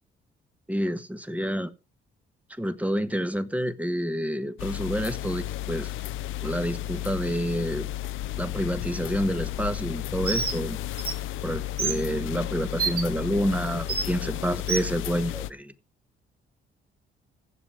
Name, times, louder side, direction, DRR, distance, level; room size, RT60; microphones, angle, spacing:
voice 1, 0.7-1.7 2.6-5.9 6.4-7.9 8.4-10.8 11.4-15.7, equal, 5° right, 1.4 m, -28 dB
sound 1, 4.6-15.5, left 13 dB, 85° left, 0.8 m, -33 dB
Bird, 10.2-10.6 11.0-11.1 11.8-12.0 12.8-13.0 13.9-14.1 14.7-14.9, right 4 dB, 50° right, 4.5 m, -27 dB
15.0 x 7.6 x 5.0 m
cardioid pair, 90°, 20 cm